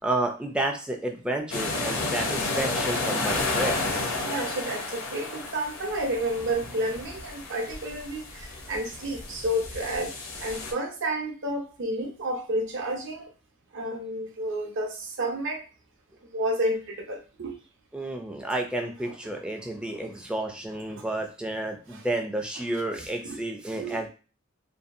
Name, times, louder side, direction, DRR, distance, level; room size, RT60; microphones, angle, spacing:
voice 1, 0.0-3.8 17.9-24.1, right 1 dB, 5° right, 1 dB, 0.3 m, -31 dB
sound 1, 1.5-10.7, left 3 dB, 70° left, 0.6 m, -31 dB
voice 2, 4.2-10.1 10.4-13.3 13.7-15.6 16.3-17.5 19.0-19.1 20.9-21.0 21.9-22.0 23.2-23.4 23.7-24.0, right 1 dB, 60° right, 2 dB, 0.7 m, -31 dB
2.6 x 2.3 x 2.5 m, 0.35 s
head